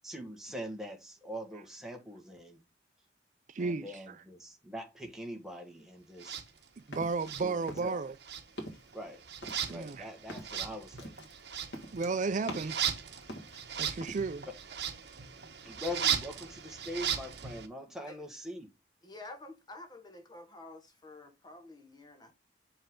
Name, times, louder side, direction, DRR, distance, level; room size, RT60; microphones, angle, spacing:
voice 1, 0.0-2.6 3.6-6.4 7.4-7.5 7.8-8.0 8.9-9.2 9.7-11.1 12.4-12.5 13.9-14.0 14.5-14.6 15.8-18.7, equal, 5° right, 1.5 m, -42 dB
voice 2, 3.5-4.2 6.9-8.1 9.7-10.1 11.9-12.8 13.8-14.5, right 4 dB, 45° right, 0.4 m, -33 dB
sound 1, 6.2-7.4 7.7-8.2 8.5-8.9 9.4-12.9 13.2-14.2, equal, 80° left, 1.8 m, -44 dB
sound 2, 6.2-6.5 7.2-8.0 8.2-17.7, right 8 dB, 65° right, 1.1 m, -37 dB
voice 3, 19.0-22.3, left 2 dB, 25° left, 1.3 m, -49 dB
6.7 x 5.5 x 3.7 m
head